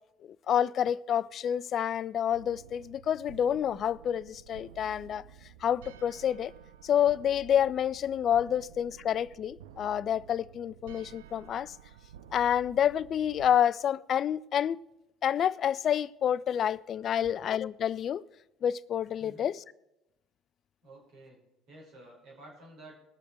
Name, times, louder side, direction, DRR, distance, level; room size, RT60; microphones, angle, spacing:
voice 1, 0.5-5.3 5.6-6.5 6.8-11.8 12.3-14.8 15.2-18.2 18.6-19.6, left 9 dB, 50° left, 0.3 m, -28 dB
sound 1, 2.3-13.6, right 11 dB, 75° right, 0.5 m, -52 dB
voice 2, 20.8-21.4 21.7-23.0, right 1 dB, 60° right, 5.1 m, -51 dB
19.5 x 7.0 x 4.7 m
hypercardioid pair, 60°, 0 cm